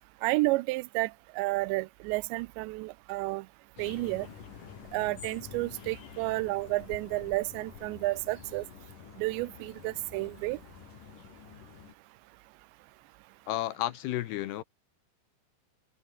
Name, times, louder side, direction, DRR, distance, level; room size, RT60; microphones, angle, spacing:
voice 1, 0.2-1.1 1.4-3.5 3.8-4.3 4.9-8.6 9.2-10.6, right 22 dB, 85° right, 2.8 m, -31 dB
sound 1, 3.8-11.9, left 7 dB, 50° left, 4.1 m, -48 dB
voice 2, 13.5-14.6, left 14 dB, 75° left, 2.9 m, -32 dB
omnidirectional pair, 5.0 m